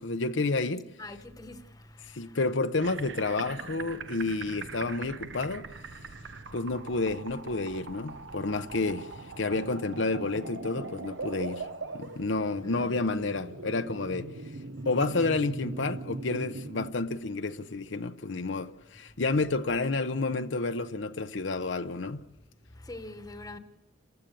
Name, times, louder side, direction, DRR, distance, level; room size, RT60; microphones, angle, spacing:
voice 1, 0.0-0.9 2.1-5.7 6.5-11.7 11.9-14.3 14.9-22.2, left 3 dB, 75° left, 0.9 m, -30 dB
voice 2, 1.0-1.8 12.7-13.3 22.8-23.6, left 2 dB, 20° left, 1.2 m, -44 dB
sound 1, 2.8-16.9, right 3 dB, 70° right, 1.1 m, -41 dB
29.0 x 15.0 x 6.9 m
head